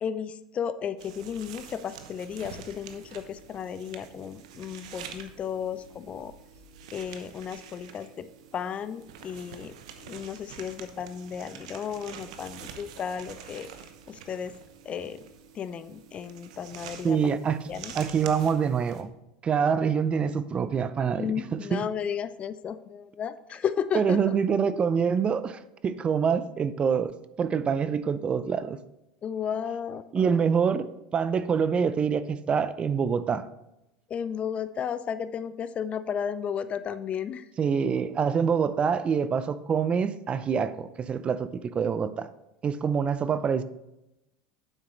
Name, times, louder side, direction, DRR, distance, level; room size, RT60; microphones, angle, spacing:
voice 1, 0.0-6.3 6.9-8.3 8.5-13.7 14.1-14.5 14.8-15.2 15.5-17.2 17.7-17.9 21.2-24.4 29.2-30.4 34.1-37.5, left 8 dB, 35° left, 13 dB, 0.5 m, -34 dB
sound 1, 1.0-19.0, right 8 dB, 75° right, 0.9 m, -46 dB
voice 2, 17.0-17.6 17.9-19.1 19.4-21.9 23.9-27.1 27.4-28.8 30.1-30.9 31.1-33.5 37.6-42.3 42.6-43.6, right 6 dB, 30° right, 13 dB, 0.5 m, -26 dB
9.1 x 7.5 x 3.1 m, 0.90 s
hypercardioid pair, 90°, 4 cm